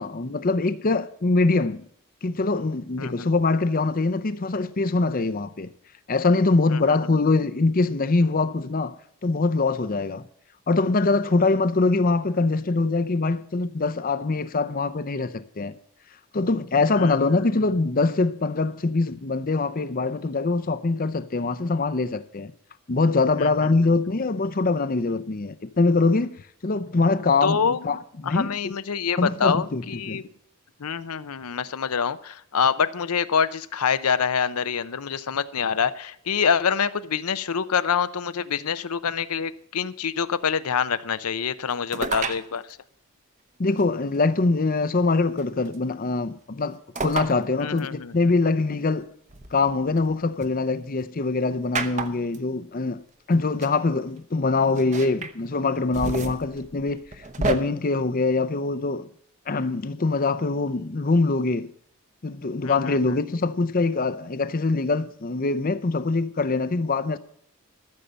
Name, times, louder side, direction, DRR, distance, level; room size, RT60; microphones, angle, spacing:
voice 1, 0.0-1.8 2.2-5.7 6.1-8.9 9.2-10.3 10.7-15.7 16.3-22.5 22.9-28.7 29.2-30.2 43.6-49.1 49.5-53.0 53.3-57.0 57.4-59.1 59.5-61.7 62.2-67.2, left 3 dB, 40° left, 0.6 m, -23 dB
voice 2, 3.0-3.3 6.7-7.0 17.0-17.5 23.4-23.5 27.4-27.9 28.2-30.2 30.8-42.7 47.6-48.1 62.6-63.2, left 6 dB, 85° left, 0.7 m, -26 dB
sound 1, 41.9-42.4 43.8-43.9 45.4-45.7 46.9-47.3 47.8-47.9 49.3-50.5 51.7-52.4 53.3-53.4 53.6-53.7 54.7-55.3 55.7-57.5, right 3 dB, 35° right, 0.9 m, -30 dB
14.0 x 6.7 x 6.8 m
head